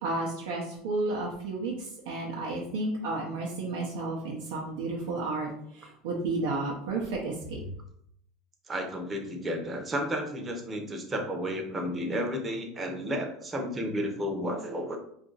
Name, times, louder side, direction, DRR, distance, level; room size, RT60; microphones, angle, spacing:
voice 1, 0.0-1.7 2.1-5.5 6.0-7.6, right 2 dB, 80° right, -2 dB, 0.6 m, -32 dB
voice 2, 8.7-15.0, equal, 20° right, 3 dB, 0.7 m, -32 dB
2.7 x 2.5 x 3.9 m, 0.70 s
supercardioid pair, 125°, 0 cm